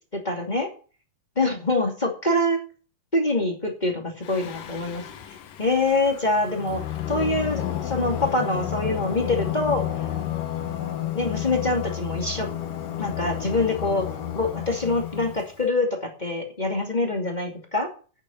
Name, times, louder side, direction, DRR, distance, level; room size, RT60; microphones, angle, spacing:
voice 1, 0.1-0.7 1.4-2.6 3.1-5.0 5.6-6.8 7.1-9.8 11.1-12.5 13.0-14.1 14.3-17.9, left 2 dB, 15° left, 1 dB, 1.9 m, -25 dB
Singing, 4.2-15.6, left 11 dB, 70° left, 2.9 m, -31 dB
9.5 x 8.8 x 7.1 m, 0.38 s
omnidirectional pair, 4.0 m